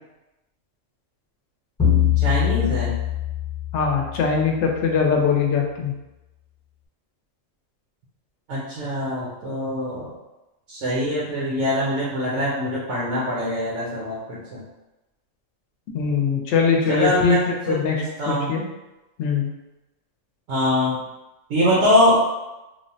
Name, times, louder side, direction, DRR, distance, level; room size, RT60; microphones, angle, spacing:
sound 1, 1.8-4.5, left 11 dB, 20° left, 0.8 m, -23 dB
voice 1, 2.2-2.9 8.5-10.1 10.7-14.6 16.9-18.5 20.5-21.0 21.5-22.2, left 1 dB, 70° right, -6 dB, 1.0 m, -23 dB
voice 2, 3.7-5.9 15.9-18.6 19.2-19.5, left 5 dB, 65° left, 1 dB, 0.8 m, -21 dB
3.2 x 2.1 x 2.6 m, 1.0 s
omnidirectional pair, 1.4 m